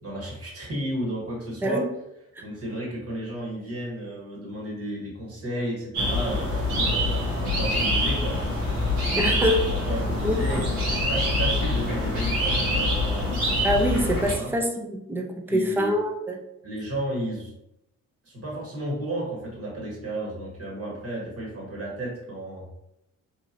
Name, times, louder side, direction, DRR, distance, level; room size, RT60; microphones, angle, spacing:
voice 1, 0.0-1.8 2.4-8.4 9.7-13.3 14.3-14.5 15.5-16.0 16.6-17.5 18.2-22.7, right 1 dB, 35° right, -4 dB, 1.4 m, -33 dB
sound 1, 5.9-14.3, left 1 dB, 85° right, 1.0 m, -25 dB
voice 2, 9.2-9.7 10.2-10.4 13.6-16.4, equal, 5° right, 2 dB, 0.5 m, -25 dB
2.9 x 2.5 x 2.6 m, 0.84 s
hypercardioid pair, 45°, 42 cm